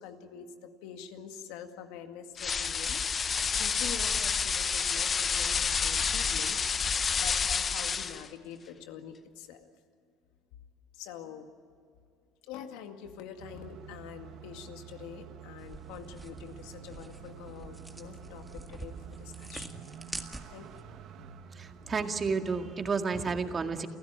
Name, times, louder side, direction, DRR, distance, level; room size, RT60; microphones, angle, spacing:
voice 1, 0.0-3.2 3.6-9.7 10.9-11.5 12.4-19.8 20.5-20.7, left 8 dB, 80° left, 6 dB, 2.1 m, -45 dB
sound 1, 2.4-8.3, left 6 dB, 30° left, 0.9 m, -29 dB
sound 2, 13.4-23.2, right 7 dB, 60° right, 1.9 m, -48 dB
sound 3, 15.6-20.8, right 1 dB, 5° right, 1.9 m, -46 dB
voice 2, 21.6-23.9, right 5 dB, 30° right, 5 dB, 2.0 m, -31 dB
29.0 x 15.5 x 9.0 m, 2.3 s
supercardioid pair, 105°, 0 cm